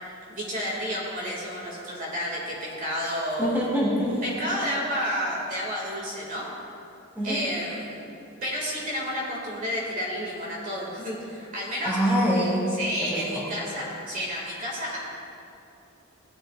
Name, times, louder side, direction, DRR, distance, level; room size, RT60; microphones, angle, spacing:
voice 1, 0.3-3.6 4.2-6.5 7.2-8.0 8.4-12.0 12.8-15.0, equal, 40° right, -4 dB, 2.3 m, -31 dB
voice 2, 3.4-4.2 7.2-7.4 11.8-12.7 13.0-13.4, equal, 10° right, -6 dB, 2.6 m, -25 dB
17.5 x 11.5 x 2.5 m, 2.8 s
head